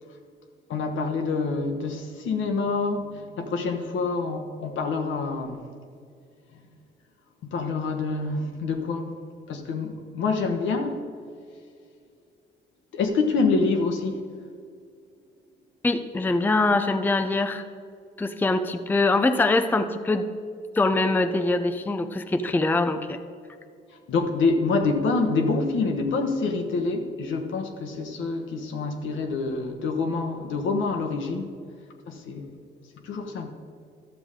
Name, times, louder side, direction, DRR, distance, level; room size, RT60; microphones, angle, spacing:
voice 1, 0.7-5.6 7.4-9.1 9.5-11.0 12.9-14.2 24.1-31.5 32.1-32.5 33.0-33.5, left 4 dB, 75° left, 4 dB, 1.1 m, -26 dB
voice 2, 15.8-17.6 18.2-20.3 20.7-23.2, left 2 dB, 10° left, 9 dB, 0.4 m, -23 dB
12.0 x 7.0 x 3.7 m, 2.3 s
cardioid pair, 90°, 20 cm